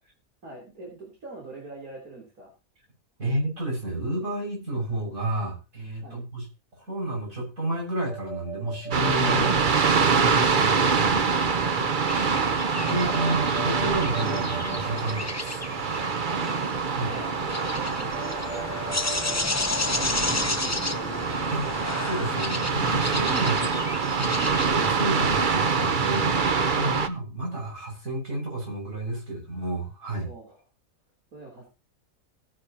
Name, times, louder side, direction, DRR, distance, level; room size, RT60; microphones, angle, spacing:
voice 1, 0.4-2.5 6.0-6.3 9.9-10.5 16.2-16.7 17.1-20.5 30.2-30.6 31.3-31.7, right 2 dB, 90° right, -2 dB, 4.1 m, -43 dB
voice 2, 3.2-6.5 6.9-10.0 10.6-11.2 12.9-15.8 16.9-17.1 21.5-21.7 22.0-23.8 24.1-30.3, right 1 dB, 70° right, 0 dB, 6.9 m, -31 dB
sound 1, 8.1-10.8 12.1-16.0 17.4-20.5, right 5 dB, 5° right, 5.2 m, -42 dB
sound 2, 8.9-27.1, right 5 dB, 40° right, 0.9 m, -25 dB
sound 3, 12.1-24.7, left 2 dB, 15° left, 0.6 m, -32 dB
17.0 x 10.5 x 2.9 m, 0.27 s
omnidirectional pair, 1.5 m